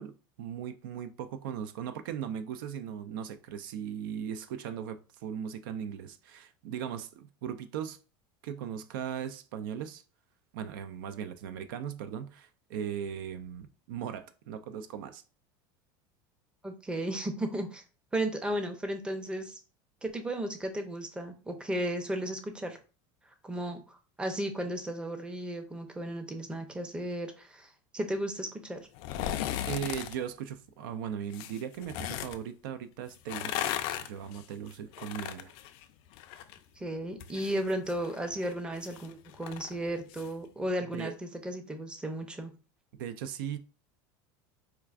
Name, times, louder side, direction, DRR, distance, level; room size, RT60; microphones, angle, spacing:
voice 1, 0.0-8.0 8.4-10.0 10.5-15.2 29.7-33.7 34.0-35.5 40.9-41.1 43.0-43.6, right 8 dB, 90° right, 0.4 m, -38 dB
voice 2, 16.6-17.8 18.1-19.6 20.0-22.8 23.4-28.8 36.8-42.5, right 1 dB, 10° right, 0.5 m, -34 dB
sound 1, 28.9-30.2 31.3-32.4 33.1-36.6 36.9-40.3 40.7-40.8, left 11 dB, 60° left, 0.4 m, -37 dB
4.4 x 2.4 x 2.4 m
supercardioid pair, 140°, 11 cm